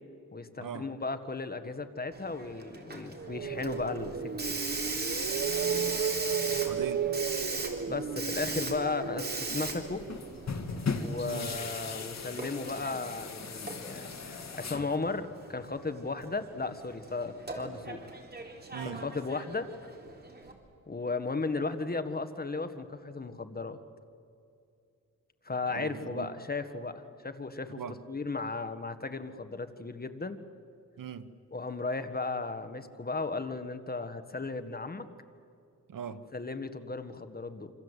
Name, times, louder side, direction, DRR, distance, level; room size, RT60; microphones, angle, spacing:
voice 1, 0.3-4.6 7.9-9.2 9.5-10.0 10.9-18.0 18.8-19.7 20.9-23.8 25.4-27.8 28.1-30.4 31.5-35.1 36.3-37.7, left 3 dB, 30° left, 1.6 m, -35 dB
Hiss, 2.1-20.5, right 3 dB, 30° right, 3.7 m, -40 dB
sound 1, 3.2-11.2, right 7 dB, 45° right, 1.1 m, -34 dB
voice 2, 6.6-7.1 11.3-11.5 18.7-19.0 25.7-26.3 27.8-28.0 31.0-31.3 35.9-36.2, right 7 dB, 75° right, 1.3 m, -40 dB
sound 2, 9.3-15.0, left 4 dB, 55° left, 2.1 m, -38 dB
27.5 x 26.0 x 8.2 m
wide cardioid pair, 100°, 33 cm